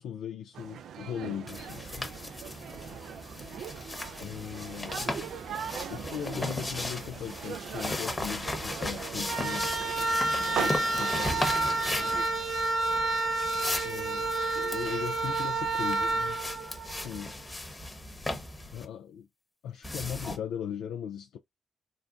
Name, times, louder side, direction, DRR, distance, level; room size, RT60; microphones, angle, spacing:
voice 1, 0.0-2.1 4.2-5.1 5.9-9.7 10.3-11.6 12.0-12.3 13.8-16.4 17.0-17.3 18.7-19.3 19.6-21.4, left 8 dB, 80° left, 0.3 m, -38 dB
sound 1, 0.5-12.3, right 8 dB, 75° right, 0.3 m, -40 dB
sound 2, 1.5-18.8 19.8-20.4, left 1 dB, 20° left, 1.0 m, -37 dB
sound 3, 9.2-17.3, right 2 dB, 50° right, 1.2 m, -30 dB
3.9 x 2.1 x 2.4 m
supercardioid pair, 50°, 0 cm